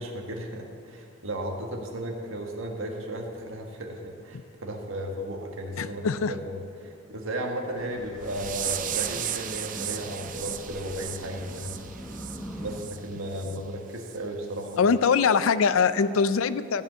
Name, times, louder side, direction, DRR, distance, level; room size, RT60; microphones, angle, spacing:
voice 1, 0.0-11.8 12.6-14.8, right 1 dB, 80° right, 1 dB, 1.6 m, -35 dB
voice 2, 5.8-6.3 14.8-16.8, left 5 dB, 90° left, 14 dB, 0.5 m, -22 dB
sound 1, 7.7-12.8, equal, 5° left, 1.0 m, -42 dB
sound 2, 8.2-13.0 13.3-13.6 14.0-14.2 14.6-14.8 15.3-15.4, right 10 dB, 40° right, 0.5 m, -35 dB
14.5 x 5.2 x 7.8 m, 2.5 s
head